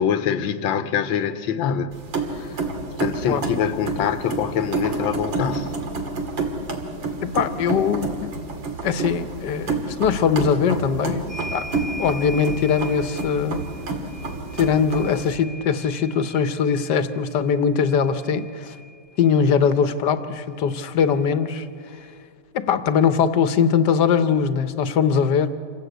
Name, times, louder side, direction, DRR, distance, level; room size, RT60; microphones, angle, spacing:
voice 1, 0.0-1.9 2.3-2.6 3.0-5.7, left 8 dB, 80° left, 1.7 m, -24 dB
sound 1, 1.9-15.4, right 3 dB, 75° right, 2.8 m, -29 dB
voice 2, 7.3-8.3 8.8-11.7 12.0-13.6 14.5-18.7 19.2-21.7 22.5-25.5, left 6 dB, 65° left, 1.5 m, -21 dB
sound 2, 11.3-19.4 20.7-20.8 21.1-22.1, equal, 40° right, 1.7 m, -41 dB
27.5 x 16.5 x 8.0 m
omnidirectional pair, 2.1 m